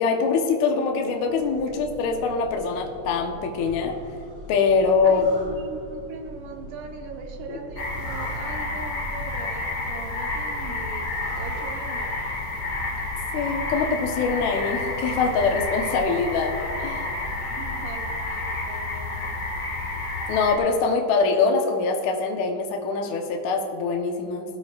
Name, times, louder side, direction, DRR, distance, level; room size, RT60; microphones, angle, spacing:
voice 1, 0.0-4.0 4.5-5.3 7.5-7.6 13.3-16.5 16.8-17.1 20.3-24.4, left 4 dB, 75° left, 2 dB, 1.7 m, -23 dB
sound 1, 1.4-18.0, right 1 dB, 45° right, 4.7 m, -42 dB
voice 2, 5.0-12.2 17.6-19.4, right 4 dB, 75° right, 2 dB, 1.9 m, -40 dB
sound 2, 7.8-20.6, left 2 dB, 50° left, 2.6 m, -30 dB
20.5 x 12.5 x 2.5 m, 2.5 s
omnidirectional pair, 5.0 m